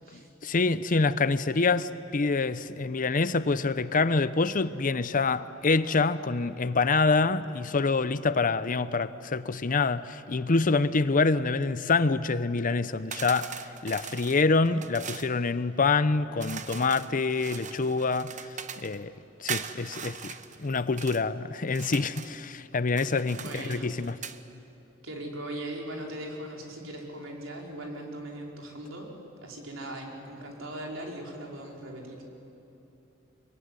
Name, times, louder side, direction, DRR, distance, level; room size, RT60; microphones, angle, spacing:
voice 1, 0.4-13.5 13.8-18.3 18.8-19.1 19.4-20.3 20.6-24.1, left 3 dB, 45° left, 0.7 m, -26 dB
sound 1, 13.1-15.3 16.4-19.0 19.5-21.2 21.7-22.4 22.9-24.4, right 7 dB, 40° right, 1.0 m, -40 dB
voice 2, 23.4-23.9 25.0-29.1 29.4-32.2, right 1 dB, 80° right, 4.7 m, -39 dB
25.0 x 22.5 x 9.8 m
head